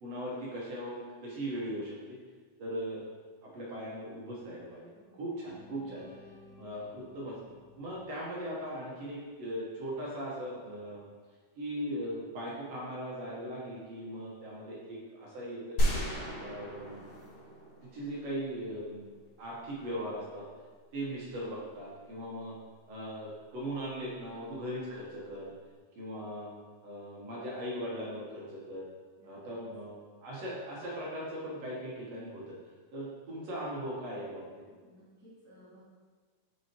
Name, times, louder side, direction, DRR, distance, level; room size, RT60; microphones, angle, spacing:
voice 1, 0.0-2.2 2.6-3.0 3.4-6.0 6.6-7.3 7.7-11.0 11.6-16.0 16.4-17.0 17.8-19.1 19.4-20.5 20.9-22.6 22.9-25.5 26.0-26.5 26.8-28.9 29.2-29.9 30.2-32.5 32.9-34.4, equal, 60° right, -5 dB, 2.1 m, -39 dB
voice 2, 4.9-5.3 29.2-29.6 34.7-35.8, equal, 10° left, -10 dB, 0.9 m, -58 dB
sound 1, 5.5-9.5, left 3 dB, 85° left, 2.6 m, -57 dB
sound 2, 15.8-18.7, equal, 55° left, 1.5 m, -33 dB
6.2 x 5.4 x 2.9 m, 1.5 s
omnidirectional pair, 3.5 m